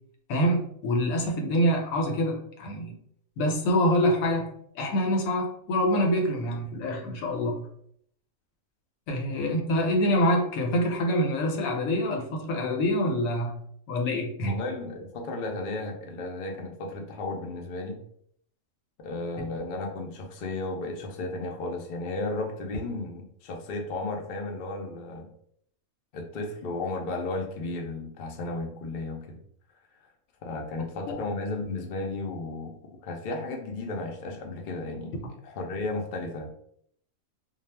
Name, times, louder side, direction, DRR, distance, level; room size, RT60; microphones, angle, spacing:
voice 1, 0.3-2.9 3.4-7.7 9.1-13.5 13.9-14.6 31.1-31.2, equal, 90° left, 3 dB, 1.0 m, -26 dB
voice 2, 14.5-18.0 19.0-25.3 26.1-29.4 30.4-32.8 33.0-35.1 35.4-36.5, left 2 dB, 65° left, 3 dB, 0.5 m, -34 dB
2.3 x 2.0 x 3.2 m, 0.67 s
omnidirectional pair, 1.4 m